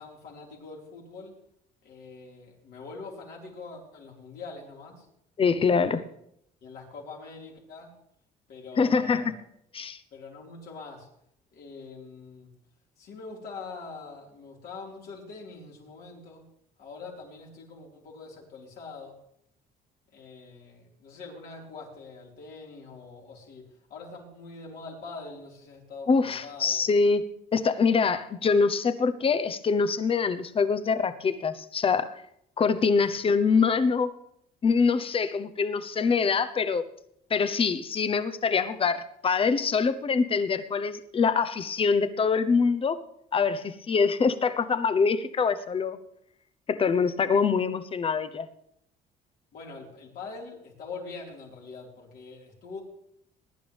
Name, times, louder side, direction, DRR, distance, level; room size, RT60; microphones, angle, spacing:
voice 1, 0.0-1.4 1.8-5.1 5.7-6.0 6.6-7.9 8.5-9.3 10.1-11.1 11.5-12.5 13.0-16.4 16.8-19.2 20.1-26.8 33.0-33.1 49.5-52.8, left 4 dB, 65° left, -3 dB, 4.6 m, -43 dB
voice 2, 5.4-6.0 8.8-9.2 9.7-10.0 26.1-27.2 27.5-32.1 32.6-34.1 34.6-36.8 37.3-43.0 43.3-46.0 46.7-48.5, left 5 dB, 35° left, 12 dB, 0.9 m, -24 dB
20.5 x 10.5 x 3.5 m, 0.73 s
cardioid pair, 110°, 17 cm